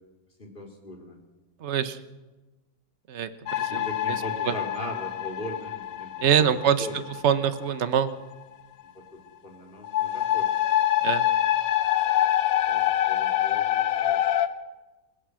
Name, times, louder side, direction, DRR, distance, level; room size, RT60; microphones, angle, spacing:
voice 1, 0.4-1.2 3.6-6.1 6.4-7.0 9.4-10.5 12.7-14.2, left 1 dB, 25° left, 1 dB, 3.6 m, -39 dB
voice 2, 1.6-2.0 3.1-3.9 4.5-4.6 6.2-8.1 11.0-11.3, right 8 dB, 45° right, 11 dB, 1.1 m, -24 dB
sound 1, 3.5-8.0 9.8-14.5, left 12 dB, 80° left, 1.6 m, -25 dB
28.0 x 16.5 x 6.3 m, 1.2 s
omnidirectional pair, 2.0 m